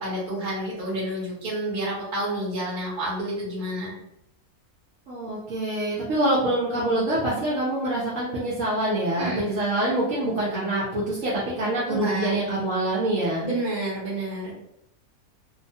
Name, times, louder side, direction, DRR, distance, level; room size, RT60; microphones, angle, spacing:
voice 1, 0.0-3.9 9.2-9.5 11.9-12.5 13.4-14.5, right 1 dB, 40° right, -5 dB, 1.1 m, -29 dB
voice 2, 5.1-13.5, right 1 dB, 65° right, -7 dB, 1.0 m, -25 dB
3.0 x 2.0 x 2.6 m, 0.78 s
omnidirectional pair, 1.6 m